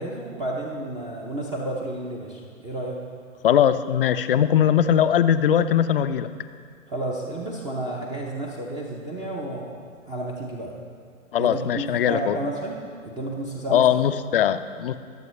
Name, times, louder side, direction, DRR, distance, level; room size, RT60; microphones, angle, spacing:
voice 1, 0.0-3.0 6.9-9.8 10.1-10.7 11.4-12.7 13.0-13.8, right 1 dB, 10° right, -2 dB, 0.6 m, -31 dB
voice 2, 3.4-6.3 11.3-12.4 13.7-15.0, left 9 dB, 45° left, 11 dB, 0.5 m, -20 dB
22.0 x 7.4 x 3.2 m, 2.1 s
figure-of-eight pair, 125°, 40 cm